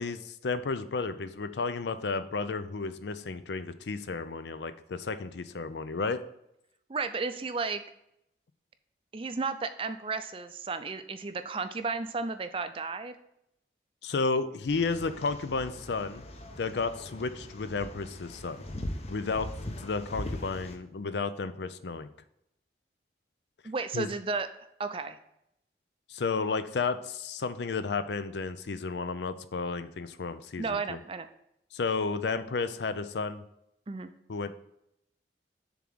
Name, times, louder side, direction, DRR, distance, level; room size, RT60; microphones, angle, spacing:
voice 1, 0.0-6.2 14.0-16.2 16.6-18.6 19.1-19.5 19.8-22.1 23.9-24.1 26.1-31.0 31.7-33.4 34.3-34.5, left 4 dB, 75° left, 12 dB, 0.5 m, -32 dB
voice 2, 6.9-7.8 9.1-13.1 23.6-24.5 24.8-25.2 30.6-31.3 33.9-34.1, right 4 dB, 30° right, 9 dB, 0.4 m, -33 dB
sound 1, 14.7-20.8, left 1 dB, 35° left, 0.7 m, -41 dB
6.9 x 3.7 x 6.1 m, 0.79 s
head